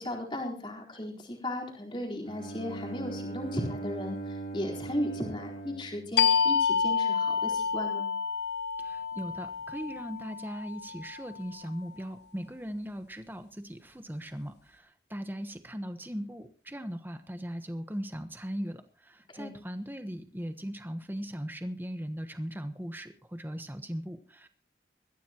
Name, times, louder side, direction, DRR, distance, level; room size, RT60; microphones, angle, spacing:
voice 1, 0.0-8.1 19.3-19.5, left 1 dB, 25° left, -1 dB, 4.2 m, -36 dB
Bowed string instrument, 2.2-7.1, right 3 dB, 55° left, 3.4 m, -40 dB
sound 1, 6.2-11.5, left 6 dB, 70° left, 0.7 m, -29 dB
voice 2, 8.8-24.5, equal, 10° right, 8 dB, 1.1 m, -39 dB
22.0 x 14.5 x 3.0 m, 0.38 s
head